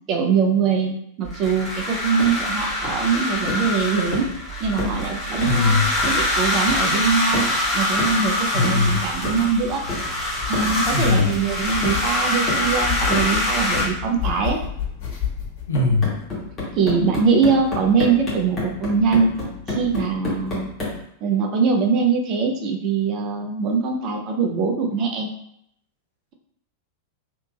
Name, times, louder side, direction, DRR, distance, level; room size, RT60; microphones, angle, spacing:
voice 1, 0.1-4.3 4.6-7.5 7.7-9.8 10.5-14.6 16.8-19.3 19.7-20.7 21.2-25.3, right 5 dB, 40° right, 2 dB, 0.6 m, -22 dB
sound 1, 1.2-13.8, left 1 dB, 10° right, 1.5 m, -24 dB
sound 2, 2.2-2.4 2.8-3.1 3.5-3.7 4.1-4.4 4.8-5.0 5.4-5.7 6.0-6.3 6.7-6.9 7.3-7.6 8.0-8.2 8.6-8.9 9.2-9.5 9.9-10.1 10.5-10.8 11.2-11.5 11.8-12.1 12.5-12.7 13.1-13.4 13.7-14.0 15.7-21.0, left 2 dB, 25° left, 1.5 m, -30 dB
voice 2, 5.4-5.9 8.5-9.0 10.9-11.3 15.7-16.1, left 3 dB, 70° left, 0 dB, 0.6 m, -20 dB
sound 3, 9.5-15.7, left 9 dB, 45° left, 1.5 m, -31 dB
3.6 x 2.8 x 2.4 m, 0.73 s
figure-of-eight pair, 90°, 0 cm